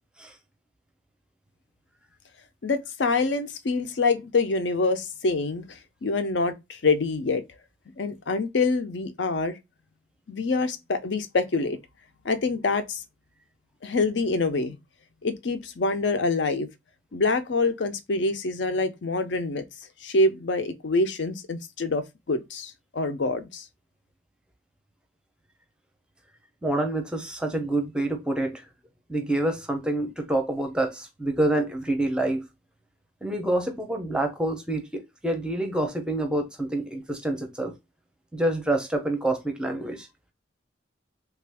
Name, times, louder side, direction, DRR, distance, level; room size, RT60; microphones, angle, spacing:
voice 1, 2.6-5.6 6.0-7.4 8.0-9.5 10.3-11.8 12.2-13.0 13.8-14.8 15.2-16.7 17.1-19.6 20.0-23.6, left 3 dB, 70° left, 0.5 m, -26 dB
voice 2, 26.6-28.6 29.1-32.5 33.2-37.7 38.3-40.1, right 1 dB, 5° right, 0.6 m, -27 dB
3.3 x 2.4 x 3.4 m
head